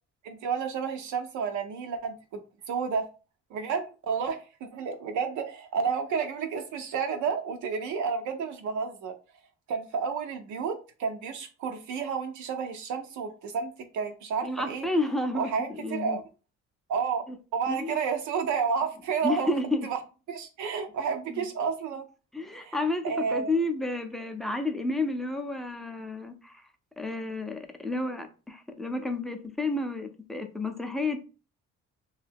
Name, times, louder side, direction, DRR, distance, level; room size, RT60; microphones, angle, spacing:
voice 1, 0.2-2.4 2.7-3.1 3.5-9.1 9.7-14.9 15.3-16.2 16.9-17.2 17.5-19.5 19.8-20.0 20.3-22.0 22.6-22.8 23.0-23.5, right 6 dB, 75° right, 0.5 m, -31 dB
voice 2, 14.4-16.2 17.3-17.4 17.7-18.0 19.2-19.9 21.3-21.4 22.3-26.5 27.0-31.2, left 2 dB, ahead, 0.4 m, -31 dB
2.6 x 2.3 x 3.4 m
cardioid pair, 90°, 30 cm